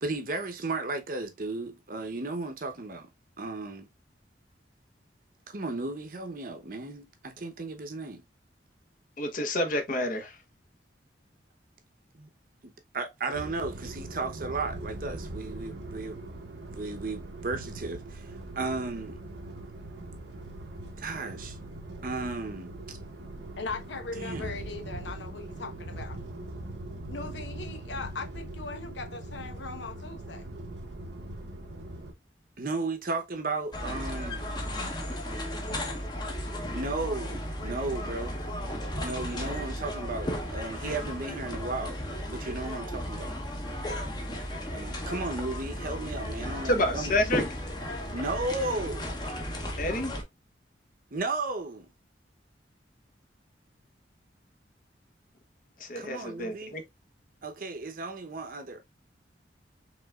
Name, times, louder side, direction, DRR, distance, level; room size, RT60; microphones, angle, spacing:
voice 1, 0.0-3.1 3.4-3.9 5.5-8.2 12.1-12.3 12.6-16.2 16.7-19.2 21.0-21.6 22.0-23.0 24.1-24.6 32.6-34.4 36.7-38.4 39.0-43.3 44.7-47.1 48.1-49.1 51.1-51.9 55.9-56.7 57.4-58.8, right 3 dB, 50° right, 0.8 m, -34 dB
voice 2, 9.2-10.4 46.7-47.4 49.8-50.1 55.8-56.8, left 1 dB, 50° left, 1.0 m, -28 dB
sound 1, 13.3-32.1, right 1 dB, 85° right, 1.0 m, -41 dB
voice 3, 23.6-26.2 27.1-30.5, left 3 dB, 85° left, 0.9 m, -39 dB
sound 2, 33.7-50.2, equal, 25° left, 0.9 m, -35 dB
5.0 x 3.4 x 2.3 m
head